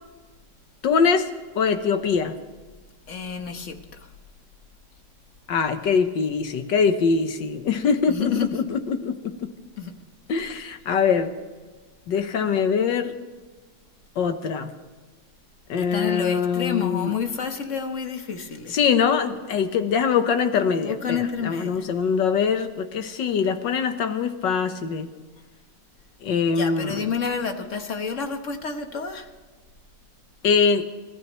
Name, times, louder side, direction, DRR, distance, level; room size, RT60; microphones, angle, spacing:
voice 1, 0.8-1.3 1.6-2.4 5.5-9.5 10.3-11.3 12.1-13.1 14.2-14.7 15.7-17.1 18.7-25.1 26.2-27.0 30.4-30.9, left 6 dB, 80° left, 8 dB, 1.8 m, -23 dB
voice 2, 3.1-4.1 8.1-8.5 9.8-9.9 15.8-18.8 20.8-21.8 26.5-29.3, left 6 dB, 45° left, 5 dB, 1.5 m, -29 dB
29.5 x 14.5 x 3.1 m, 1.3 s
omnidirectional pair, 1.9 m